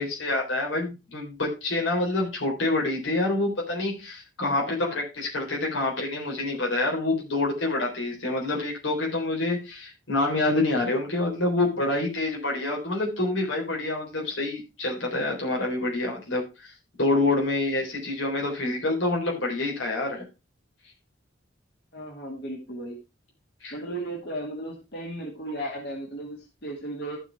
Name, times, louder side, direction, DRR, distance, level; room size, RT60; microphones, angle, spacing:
voice 1, 0.0-16.7 17.0-20.2 23.6-23.8, left 2 dB, 85° left, -1 dB, 3.6 m, -27 dB
voice 2, 21.9-23.0 23.7-27.2, right 1 dB, 60° left, 0 dB, 2.3 m, -35 dB
14.0 x 5.1 x 4.5 m, 0.28 s
head